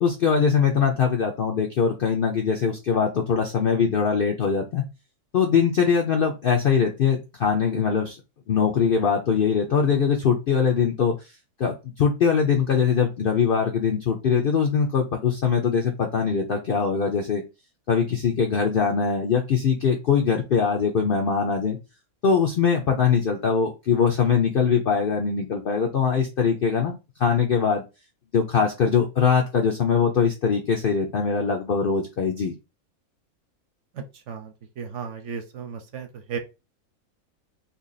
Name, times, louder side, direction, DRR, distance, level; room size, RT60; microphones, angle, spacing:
voice 1, 0.0-4.9 5.3-8.2 8.5-11.2 11.6-17.4 17.9-21.8 22.2-26.9 27.2-27.8 28.3-32.5, left 6 dB, 65° left, 2 dB, 0.5 m, -22 dB
voice 2, 33.9-36.4, right 6 dB, 65° right, 6 dB, 0.8 m, -35 dB
2.8 x 2.6 x 3.9 m, 0.27 s
omnidirectional pair, 1.6 m